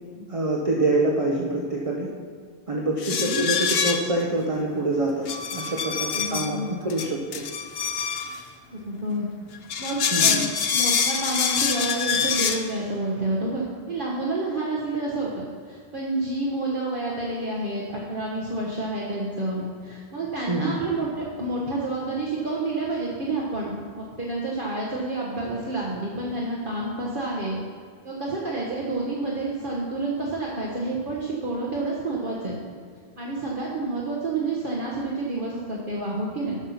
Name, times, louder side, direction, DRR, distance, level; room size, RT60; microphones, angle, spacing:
voice 1, 0.2-2.1 2.7-7.4 10.1-10.5 20.5-20.8, right 2 dB, 35° right, -2 dB, 1.0 m, -26 dB
sound 1, 3.0-4.2 5.3-6.5 6.9-8.4 9.5-12.6, left 6 dB, 70° left, 1.0 m, -25 dB
voice 2, 3.1-3.4 6.1-6.7 8.7-9.3 9.8-10.4 10.7-27.6 28.0-32.6 33.2-36.6, right 2 dB, 55° right, -4 dB, 1.4 m, -29 dB
12.5 x 5.6 x 5.7 m, 2.1 s
omnidirectional pair, 1.1 m